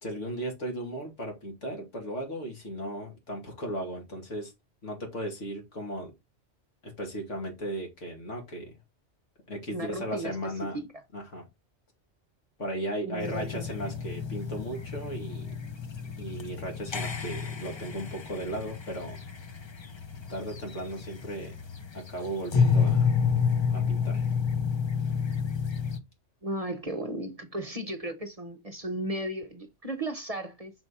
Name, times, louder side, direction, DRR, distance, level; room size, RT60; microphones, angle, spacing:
voice 1, 0.0-4.5 4.8-6.1 6.8-8.7 9.5-10.8 11.1-11.4 12.6-15.5 16.2-19.2 20.3-21.5 21.9-23.1 23.7-24.3, right 1 dB, 85° left, 2.8 m, -36 dB
voice 2, 9.7-10.4 13.0-13.7 26.4-30.7, right 1 dB, 35° right, 0.9 m, -35 dB
sound 1, 13.2-26.0, left 6 dB, 35° left, 0.5 m, -30 dB
6.2 x 4.4 x 4.2 m
omnidirectional pair, 1.2 m